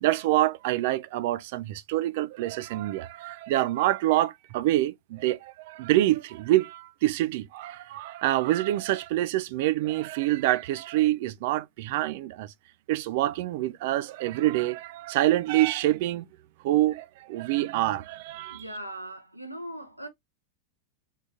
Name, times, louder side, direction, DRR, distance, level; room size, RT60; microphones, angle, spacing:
voice 1, 0.0-12.5 12.9-16.3 16.6-18.6, right 15 dB, 50° right, 0.4 m, -26 dB
voice 2, 18.5-20.1, right 1 dB, 90° right, 0.8 m, -39 dB
3.7 x 3.5 x 2.8 m
figure-of-eight pair, 90°, 0 cm